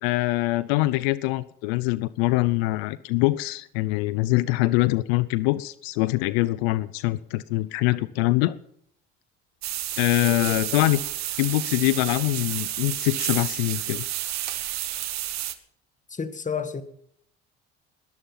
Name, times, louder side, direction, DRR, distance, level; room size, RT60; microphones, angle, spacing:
voice 1, 0.0-8.6 10.0-11.0 11.4-14.0, left 19 dB, 90° left, 0.6 m, -24 dB
sound 1, 9.6-15.5, right 13 dB, 65° right, 1.5 m, -30 dB
voice 2, 10.2-10.6 16.1-16.8, left 6 dB, 25° left, 2.0 m, -31 dB
20.5 x 11.5 x 5.7 m
supercardioid pair, 80°, 30 cm